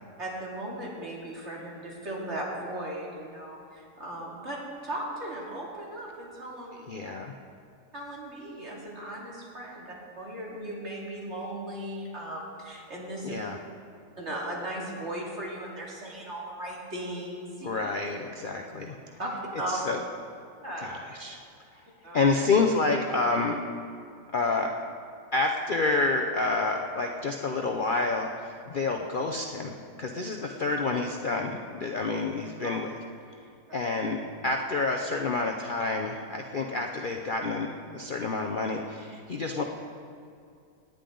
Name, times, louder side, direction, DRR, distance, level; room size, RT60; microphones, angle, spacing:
voice 1, 0.2-6.8 7.9-13.3 14.2-17.7 19.2-19.8 20.6-20.9 22.0-22.3 32.6-32.8 33.7-33.8, right 1 dB, 40° right, -4 dB, 2.7 m, -37 dB
voice 2, 6.9-7.3 13.2-13.6 17.6-19.2 19.7-20.0 20.8-21.4 22.1-23.6 24.3-24.7 25.3-33.0 33.7-39.6, left 3 dB, 75° left, 2 dB, 0.4 m, -28 dB
18.5 x 10.0 x 3.9 m, 2.5 s
omnidirectional pair, 1.8 m